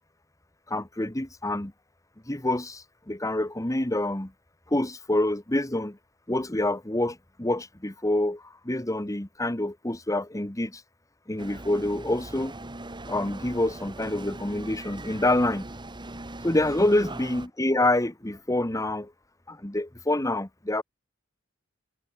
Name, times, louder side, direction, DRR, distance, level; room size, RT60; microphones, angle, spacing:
voice 1, 0.7-1.7 2.3-4.3 4.7-6.0 6.3-10.8 11.3-12.5 13.1-15.6 16.4-19.1 19.5-20.8, left 1 dB, 15° left, 1.6 m, -27 dB
sound 1, 11.4-17.5, right 2 dB, 25° right, 2.0 m, -41 dB
head